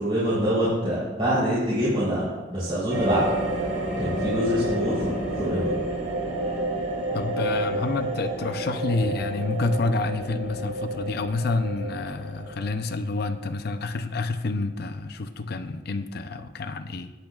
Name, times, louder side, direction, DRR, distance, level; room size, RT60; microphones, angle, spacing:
voice 1, 0.0-2.2 2.5-3.3 4.0-5.7, equal, 30° right, -10 dB, 3.6 m, -25 dB
sound 1, 2.9-12.7, right 1 dB, 85° right, 2.4 m, -30 dB
voice 2, 4.0-4.4 7.1-17.1, left 3 dB, 60° left, 9 dB, 0.6 m, -28 dB
19.0 x 8.3 x 2.4 m, 1.2 s
head